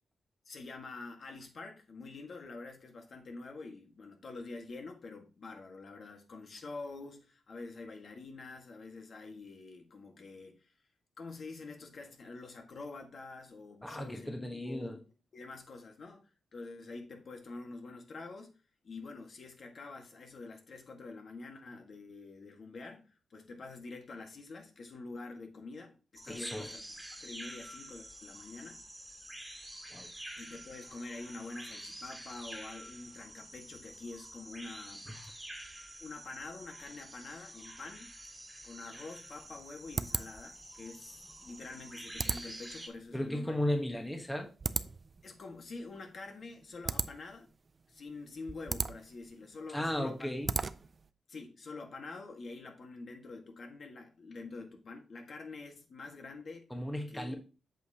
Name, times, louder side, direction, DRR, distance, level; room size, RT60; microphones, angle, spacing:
voice 1, 0.4-10.7 11.2-15.0 15.3-18.6 18.8-28.8 30.4-35.1 36.0-38.1 38.6-43.6 45.2-47.5 47.9-50.4 51.3-56.6 57.1-57.3, left 3 dB, 55° left, 1.6 m, -46 dB
voice 2, 13.8-15.0 26.3-26.7 29.9-30.1 43.1-44.5 49.7-50.6 56.7-57.3, left 1 dB, 10° left, 1.2 m, -35 dB
sound 1, 26.1-42.9, right 1 dB, 10° right, 2.2 m, -48 dB
sound 2, 38.9-51.1, right 4 dB, 40° right, 0.4 m, -39 dB
8.2 x 6.5 x 2.8 m
cardioid pair, 100°, 0 cm